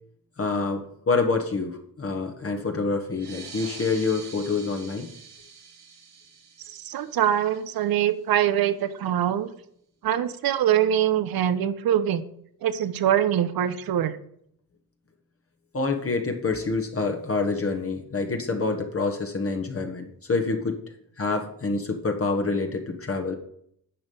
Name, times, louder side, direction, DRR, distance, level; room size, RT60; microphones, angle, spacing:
voice 1, 0.4-5.1 15.7-20.8 21.2-23.4, left 3 dB, 35° left, 3 dB, 1.4 m, -27 dB
sound 1, 3.1-8.2, right 6 dB, 80° right, 2.4 m, -45 dB
voice 2, 6.7-9.5 10.0-12.2 12.6-14.2, right 10 dB, 65° right, 13 dB, 0.9 m, -23 dB
9.8 x 5.2 x 5.5 m, 0.69 s
supercardioid pair, 65°, 38 cm